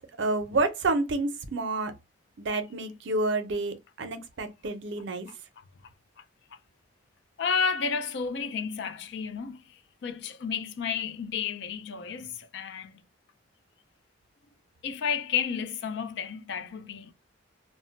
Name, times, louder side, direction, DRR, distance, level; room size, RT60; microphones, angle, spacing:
voice 1, 0.2-1.9 2.4-5.3, right 2 dB, 60° right, 0.5 m, -29 dB
voice 2, 7.4-12.9 14.8-17.1, left 6 dB, 60° left, 0.4 m, -32 dB
2.1 x 2.1 x 3.7 m
head